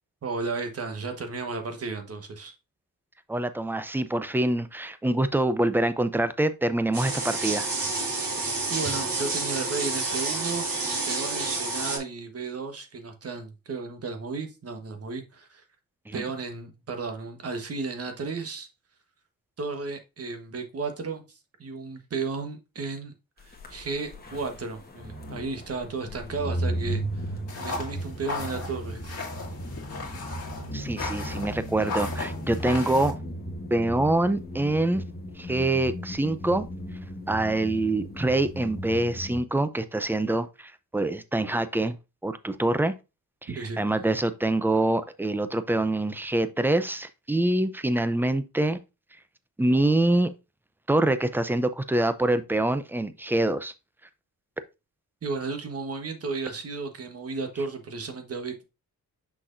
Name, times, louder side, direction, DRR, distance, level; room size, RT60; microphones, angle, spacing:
voice 1, 0.2-2.5 8.7-10.7 11.1-15.6 16.1-18.7 19.6-23.1 23.4-29.1 43.5-43.8 55.2-58.6, right 4 dB, 40° right, 1.3 m, -34 dB
voice 2, 3.3-7.7 16.1-16.3 30.7-33.2 33.7-35.0 35.4-36.7 37.3-42.0 42.2-42.9 43.4-43.5 43.8-48.8 49.6-50.3 50.9-53.7, right 1 dB, 5° right, 0.5 m, -25 dB
sound 1, 6.9-12.0, right 3 dB, 70° right, 2.6 m, -29 dB
sound 2, 23.5-39.4, right 1 dB, 25° left, 1.5 m, -36 dB
sound 3, 27.5-33.1, left 3 dB, 40° left, 2.1 m, -36 dB
6.1 x 6.0 x 2.5 m
wide cardioid pair, 140°, 36 cm